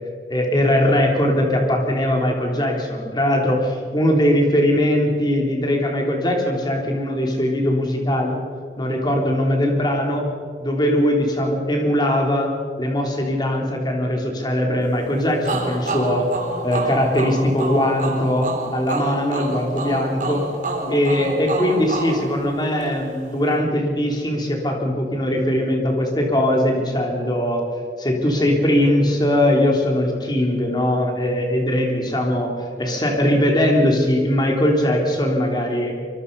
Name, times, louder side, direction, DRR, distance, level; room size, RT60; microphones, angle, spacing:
voice 1, 0.3-8.4 8.8-10.2 10.6-12.5 12.8-16.3 16.6-20.4 20.9-27.6 28.0-32.5 32.8-35.9, left 1 dB, 25° left, 1 dB, 3.6 m, -20 dB
sound 1, 15.4-23.0, right 2 dB, 45° right, 3.6 m, -29 dB
25.0 x 23.5 x 5.6 m, 2.3 s
head